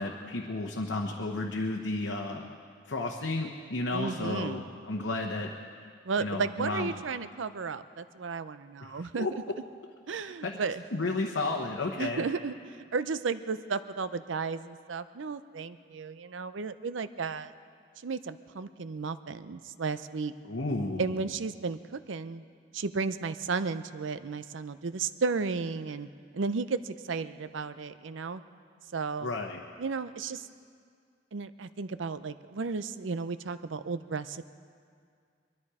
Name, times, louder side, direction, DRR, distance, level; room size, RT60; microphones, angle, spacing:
voice 1, 0.0-2.5 2.9-5.5 6.2-6.9 8.8-9.3 10.2-10.5 10.9-12.3 20.5-21.2 29.2-29.6, left 2 dB, 85° left, 0 dB, 1.0 m, -32 dB
voice 2, 3.9-4.6 6.0-9.3 10.1-10.8 12.0-17.5 18.0-20.3 21.0-22.4 22.7-26.1 26.3-28.4 28.9-29.3 29.8-30.5 31.3-34.5, right 4 dB, 85° right, 13 dB, 0.6 m, -34 dB
22.0 x 13.0 x 4.9 m, 2.2 s
head